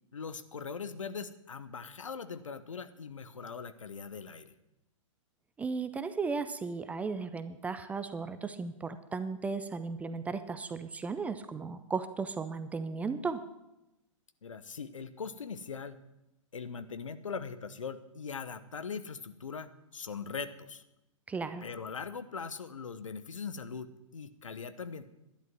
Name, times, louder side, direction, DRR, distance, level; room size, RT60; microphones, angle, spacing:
voice 1, 0.1-4.6 14.4-16.0 16.5-20.8 21.6-23.9 24.1-25.1, left 5 dB, 70° left, 12 dB, 0.9 m, -41 dB
voice 2, 5.6-13.4 21.3-21.6, right 4 dB, 10° right, 11 dB, 0.4 m, -35 dB
11.5 x 10.5 x 6.0 m, 0.91 s
figure-of-eight pair, 115°, 17 cm